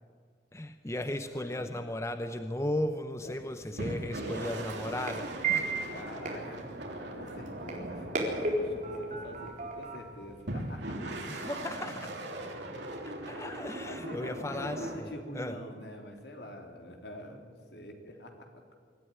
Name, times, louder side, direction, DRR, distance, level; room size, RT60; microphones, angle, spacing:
voice 1, 0.5-5.9 11.3-12.1 13.0-15.6, left 1 dB, 15° left, 8 dB, 0.7 m, -36 dB
voice 2, 1.3-1.9 3.2-4.5 5.9-6.6 7.1-8.1 8.4-11.3 13.2-18.7, left 1 dB, 70° left, 3 dB, 3.3 m, -46 dB
sound 1, 3.2-11.1, right 3 dB, 45° right, 4.2 m, -37 dB
sound 2, 3.8-9.7 10.5-15.0, right 1 dB, 75° right, 3.2 m, -40 dB
24.5 x 13.0 x 9.8 m, 2.1 s
head